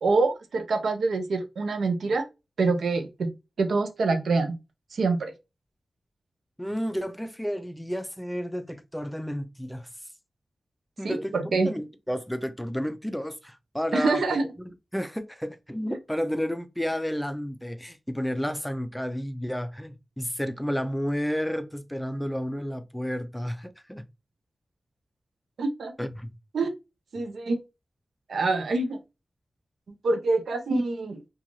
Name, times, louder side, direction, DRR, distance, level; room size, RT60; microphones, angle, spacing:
voice 1, 0.0-2.2 2.6-3.3 3.6-4.6 4.9-5.3 11.0-11.7 13.9-14.4 15.9-16.0 25.6-25.9 26.5-26.7 27.1-27.6 28.3-29.0 30.0-31.2, right 3 dB, 85° right, 0.5 m, -25 dB
voice 2, 6.6-9.9 11.0-11.3 11.6-24.0 26.0-26.3, equal, 5° left, 0.4 m, -31 dB
2.5 x 2.3 x 3.0 m
cardioid pair, 55°, 0 cm